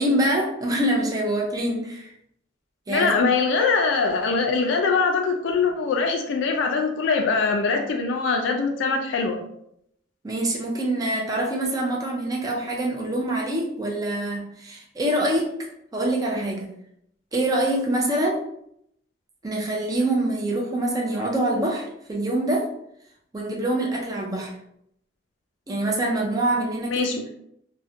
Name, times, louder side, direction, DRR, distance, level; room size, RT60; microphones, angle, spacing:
voice 1, 0.0-2.1 2.9-3.3 10.2-16.7 17.3-18.4 19.4-22.7 23.3-24.5 25.7-27.1, right 1 dB, 20° right, -1 dB, 0.4 m, -25 dB
voice 2, 2.9-9.4 26.9-27.2, left 4 dB, 65° left, 4 dB, 0.3 m, -22 dB
2.4 x 2.1 x 2.6 m, 0.73 s
head